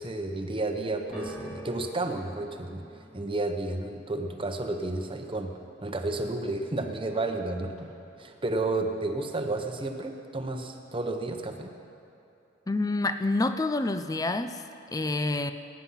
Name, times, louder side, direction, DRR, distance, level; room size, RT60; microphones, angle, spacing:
voice 1, 0.0-5.5 5.8-7.9 8.2-11.7, right 2 dB, 30° right, 4 dB, 1.0 m, -31 dB
sound 1, 1.1-7.4 7.7-8.3 9.1-9.2, equal, 35° left, 2.7 m, -49 dB
voice 2, 12.7-14.6 14.9-15.5, left 2 dB, 20° left, 9 dB, 0.5 m, -27 dB
21.5 x 9.9 x 5.6 m, 2.7 s
head